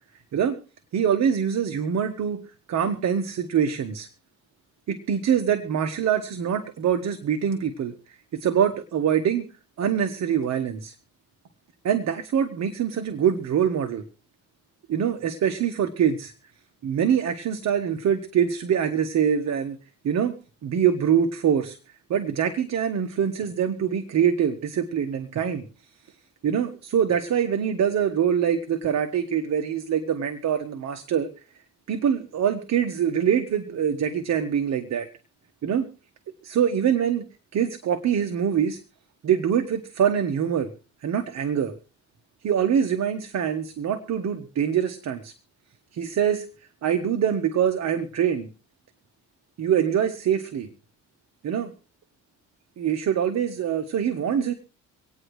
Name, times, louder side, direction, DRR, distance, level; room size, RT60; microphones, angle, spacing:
voice 1, 0.9-2.4 2.7-4.1 4.9-7.9 8.4-9.4 9.8-10.9 11.8-14.0 14.9-16.3 16.8-19.8 20.0-20.4 20.6-21.8 22.1-25.6 26.4-31.3 31.9-35.1 35.6-35.9 36.4-37.2 37.5-38.8 39.2-40.7 41.0-41.7 42.4-45.3 45.9-46.4 46.8-48.5 49.6-50.7 51.4-51.7 52.8-54.5, right 8 dB, 60° right, 7 dB, 1.3 m, -24 dB
25.5 x 9.2 x 3.2 m, 0.36 s
cardioid pair, 90°, 30 cm